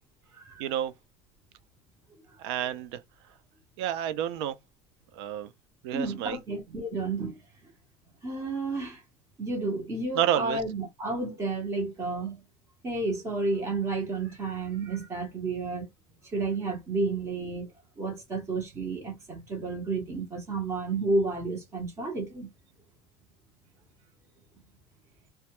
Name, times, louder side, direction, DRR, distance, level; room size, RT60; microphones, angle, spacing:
voice 1, 0.6-0.9 2.4-3.0 3.8-4.5 5.1-5.5 5.8-6.4 10.2-10.6, right 11 dB, 85° right, 0.5 m, -29 dB
voice 2, 5.9-7.4 8.2-9.0 9.4-12.4 12.8-15.9 16.2-17.7 18.0-22.5, right 3 dB, 20° right, 0.9 m, -31 dB
2.2 x 2.1 x 2.9 m
cardioid pair, 165°, 13 cm